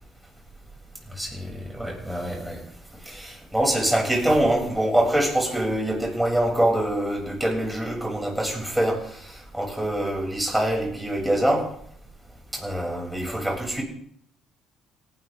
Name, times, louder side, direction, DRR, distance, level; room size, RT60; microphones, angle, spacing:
voice 1, 1.1-2.6 3.0-11.7 12.5-13.8, right 1 dB, 5° right, -1 dB, 7.2 m, -25 dB
18.0 x 12.0 x 3.7 m, 0.65 s
hypercardioid pair, 55°, 0 cm